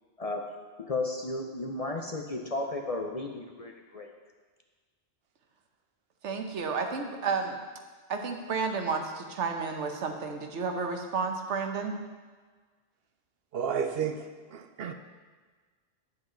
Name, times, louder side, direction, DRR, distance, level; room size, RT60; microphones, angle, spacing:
voice 1, 0.8-4.1, left 2 dB, 40° left, 2 dB, 0.6 m, -34 dB
voice 2, 6.2-7.6 8.1-12.0, right 5 dB, 80° right, 4 dB, 1.2 m, -31 dB
voice 3, 13.5-14.9, right 7 dB, 65° right, 8 dB, 0.7 m, -32 dB
9.4 x 7.8 x 3.8 m, 1.4 s
omnidirectional pair, 1.2 m